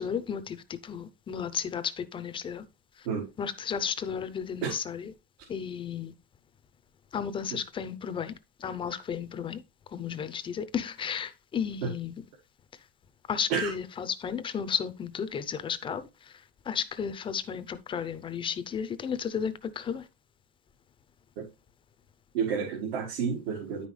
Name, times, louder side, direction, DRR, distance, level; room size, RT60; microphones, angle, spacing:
voice 1, 0.0-2.6 3.0-3.1 3.4-5.1 5.5-6.1 7.1-8.3 8.6-9.6 9.9-12.1 13.3-20.1, left 7 dB, 15° left, 0.5 m, -33 dB
voice 2, 22.3-23.9, right 6 dB, 70° right, 1.9 m, -30 dB
9.6 x 5.4 x 3.2 m
supercardioid pair, 150°, 29 cm